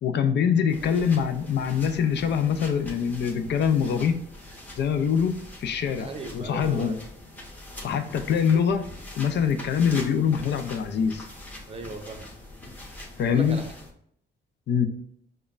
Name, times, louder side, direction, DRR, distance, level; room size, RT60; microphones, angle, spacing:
voice 1, 0.0-4.2 4.8-6.1 6.3-6.9 7.8-8.9 9.2-11.3 13.2-13.6 14.7-14.9, left 7 dB, 60° left, 8 dB, 0.5 m, -24 dB
sound 1, 0.7-13.9, left 1 dB, 10° left, 1.2 m, -43 dB
voice 2, 0.8-1.5 6.0-7.1 11.7-12.3 13.3-13.7, right 3 dB, 30° right, 6 dB, 0.7 m, -38 dB
5.0 x 2.2 x 2.4 m, 0.67 s
cardioid pair, 90°, 20 cm